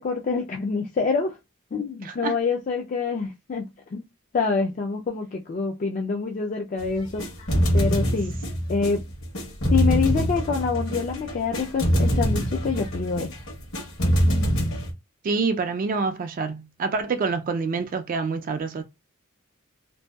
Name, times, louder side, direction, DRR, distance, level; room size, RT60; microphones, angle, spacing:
voice 1, 0.0-1.3 1.7-4.0 4.3-7.2 7.7-8.3 8.7-9.0 9.7-13.3, left 5 dB, 40° left, 0.3 m, -26 dB
voice 2, 2.0-2.4 15.2-18.8, right 4 dB, 40° right, 0.3 m, -27 dB
sound 1, 6.8-14.9, equal, 70° left, 1.1 m, -24 dB
2.6 x 2.2 x 2.2 m
head